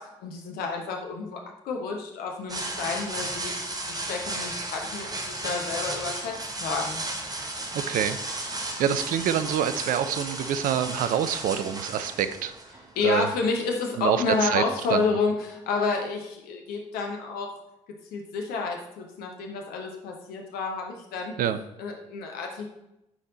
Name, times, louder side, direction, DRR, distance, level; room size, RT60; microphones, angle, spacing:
voice 1, 0.0-3.5 3.8-7.0 12.9-17.6 18.1-21.3 21.8-22.7, left 4 dB, 65° left, 2 dB, 1.0 m, -30 dB
sound 1, 2.5-13.2, right 2 dB, 20° right, 1.4 m, -34 dB
voice 2, 7.7-8.2 8.8-12.5 13.0-13.3 14.0-14.6 14.9-15.0 21.4-21.6, right 9 dB, 55° right, 12 dB, 0.6 m, -26 dB
10.0 x 4.3 x 4.0 m, 0.86 s
figure-of-eight pair, 45°, 17 cm